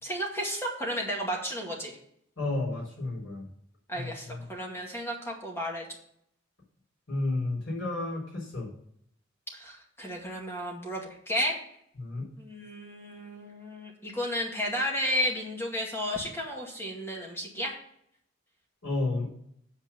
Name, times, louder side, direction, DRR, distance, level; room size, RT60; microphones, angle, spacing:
voice 1, 0.0-2.0 3.9-5.9 9.5-11.6 12.4-17.7, equal, 15° left, -1 dB, 2.1 m, -33 dB
voice 2, 2.4-3.4 3.9-4.4 7.1-8.7 12.0-12.3 18.8-19.3, left 2 dB, 75° left, -3 dB, 4.1 m, -31 dB
8.4 x 4.8 x 7.0 m, 0.68 s
head